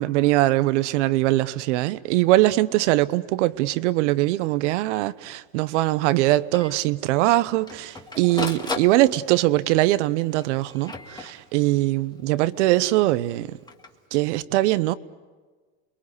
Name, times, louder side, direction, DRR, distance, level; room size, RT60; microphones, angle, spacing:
voice 1, 0.0-13.6 14.1-15.0, right 17 dB, 75° right, 1.0 m, -22 dB
Printer, 4.9-5.0 5.3-5.4 5.8-5.9 6.5-6.8 7.4-9.5 10.3-11.8 13.5-13.9, left 3 dB, 10° left, 1.8 m, -35 dB
30.0 x 22.0 x 8.3 m
supercardioid pair, 125°, 36 cm